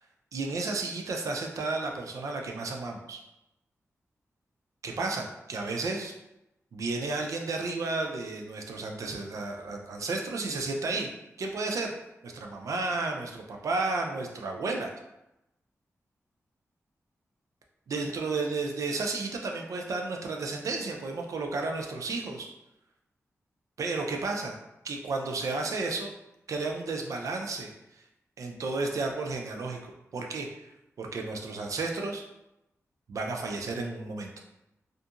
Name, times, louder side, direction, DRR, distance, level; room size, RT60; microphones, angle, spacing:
voice 1, 0.3-3.2 4.8-6.1 6.7-11.1 11.4-11.9 12.2-14.9 17.9-22.5 23.8-24.5 24.8-26.1 26.5-28.0 28.4-29.8 30.1-30.7 31.0-32.2 33.1-34.3, right 3 dB, 75° right, 2 dB, 0.4 m, -32 dB
2.6 x 2.5 x 2.4 m, 0.91 s
wide cardioid pair, 85°, 6 cm